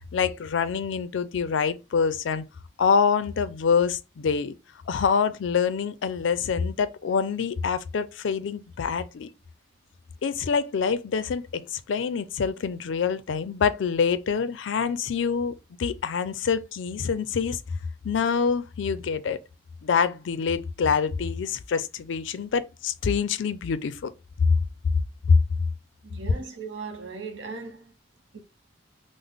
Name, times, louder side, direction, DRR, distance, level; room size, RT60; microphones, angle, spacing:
voice 1, 0.1-2.4 2.8-4.5 4.9-9.3 10.2-15.5 15.8-17.6 18.0-19.4 19.8-24.1, left 6 dB, 75° left, 0.4 m, -26 dB
voice 2, 26.0-27.9 28.3-28.4, right 4 dB, 70° right, 0.7 m, -38 dB
3.6 x 2.0 x 3.4 m
head